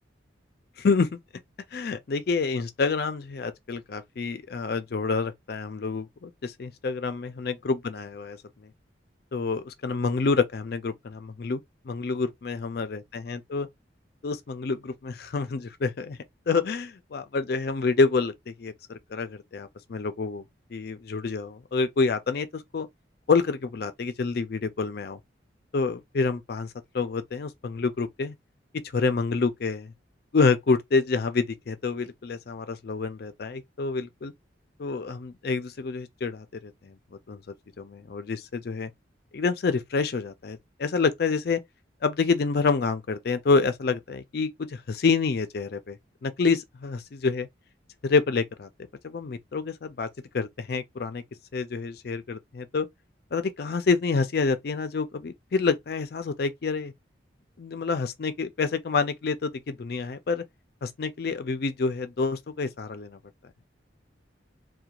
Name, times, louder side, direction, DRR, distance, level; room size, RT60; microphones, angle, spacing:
voice 1, 0.8-1.2 1.7-8.4 8.6-8.7 9.3-13.7 14.2-16.2 16.5-20.4 20.7-22.9 23.3-25.2 25.7-28.3 28.9-29.9 30.3-34.3 34.8-36.9 37.3-37.4 37.8-38.9 39.3-41.6 42.0-47.5 48.0-48.7 49.0-50.1 50.3-51.2 51.5-52.9 53.3-56.9 57.6-60.4 60.8-63.2, left 4 dB, 55° left, 0.4 m, -27 dB
2.4 x 2.2 x 2.8 m
head